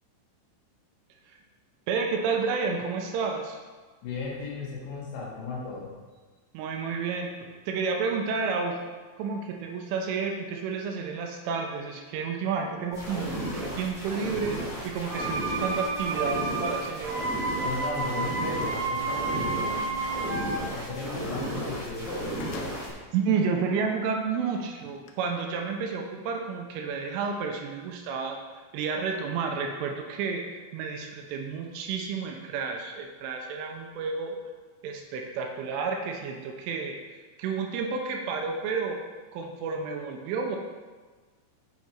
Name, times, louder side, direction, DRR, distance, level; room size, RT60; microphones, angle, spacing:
voice 1, 1.9-3.6 6.5-7.3 7.7-8.8 9.2-17.1 23.1-34.3 34.8-37.0 37.4-39.0 39.3-40.6, right 5 dB, 85° right, 2 dB, 3.2 m, -31 dB
voice 2, 4.0-5.9 17.6-20.0 20.7-22.4, left 3 dB, 55° left, -4 dB, 2.8 m, -35 dB
sound 1, 12.9-22.9, right 1 dB, ahead, 0.7 m, -35 dB
sound 2, 15.0-20.6, right 3 dB, 70° right, 1.7 m, -31 dB
sound 3, 18.6-18.8 21.7-21.8 22.1-23.2 23.8-23.9 24.9-25.1, left 4 dB, 85° left, 2.3 m, -46 dB
8.1 x 6.3 x 4.5 m, 1.4 s
omnidirectional pair, 5.7 m